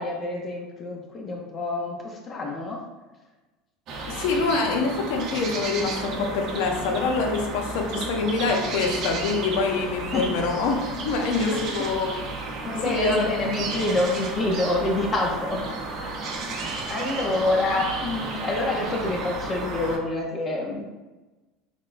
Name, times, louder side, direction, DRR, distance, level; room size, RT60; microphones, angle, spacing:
voice 1, 0.0-2.8 10.1-10.3 11.4-11.6 12.7-15.6 16.0-20.8, left 2 dB, 30° left, 0 dB, 0.6 m, -27 dB
sound 1, 3.9-20.0, right 3 dB, 50° right, 0.7 m, -32 dB
voice 2, 4.1-12.2 12.8-13.3, left 4 dB, 75° left, 3 dB, 0.6 m, -25 dB
5.8 x 2.2 x 2.5 m, 1.2 s
supercardioid pair, 110°, 0 cm